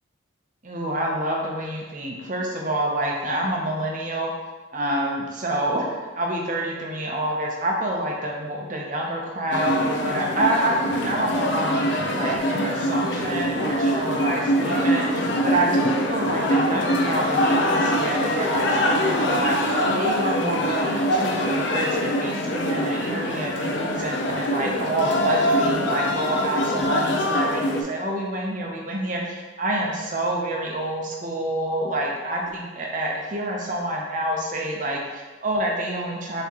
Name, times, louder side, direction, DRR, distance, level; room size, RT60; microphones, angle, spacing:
voice 1, 0.6-4.3 4.7-5.9 6.2-36.4, right 1 dB, 40° right, -1 dB, 0.7 m, -27 dB
sound 1, 9.5-27.8, equal, 65° left, 0.5 m, -24 dB
5.9 x 3.0 x 2.9 m, 1.3 s
head